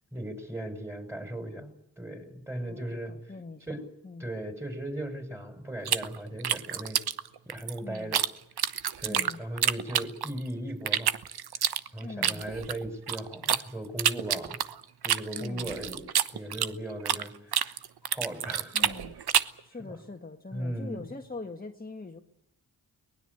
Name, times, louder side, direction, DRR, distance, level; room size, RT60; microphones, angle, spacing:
voice 1, 0.1-3.3 3.7-3.9 4.2-7.0 7.5-8.2 9.0-11.1 11.9-14.6 15.0-16.0 16.3-17.7 18.0-18.8 19.9-20.0 20.5-21.1, right 1 dB, 5° right, 8 dB, 6.1 m, -37 dB
voice 2, 2.6-4.3 7.8-8.2 9.1-9.4 12.0-12.4 15.3-15.7 18.7-19.2 19.6-22.2, left 3 dB, 25° left, 3 dB, 1.9 m, -42 dB
sound 1, 5.9-8.3 8.6-10.5 10.9-13.6 14.0-17.3 17.5-19.6, right 9 dB, 80° right, 1.1 m, -28 dB
23.0 x 20.0 x 8.2 m, 0.81 s
cardioid pair, 65°, 38 cm